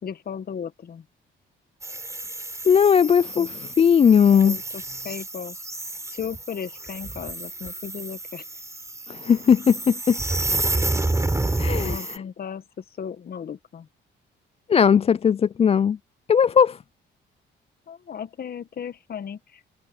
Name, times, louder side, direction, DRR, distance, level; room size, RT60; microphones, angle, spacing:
voice 1, 0.0-1.0 3.3-3.5 4.3-5.5 6.1-8.4 11.8-12.6 13.0-13.9 17.9-19.6, left 7 dB, 50° left, 1.5 m, -35 dB
sound 1, 1.8-12.2, right 2 dB, 15° right, 4.1 m, -30 dB
voice 2, 2.7-4.6 9.1-10.2 11.6-12.2 14.7-16.0 16.3-16.8, left 7 dB, 30° left, 0.4 m, -18 dB
cardioid pair, 90°, 20 cm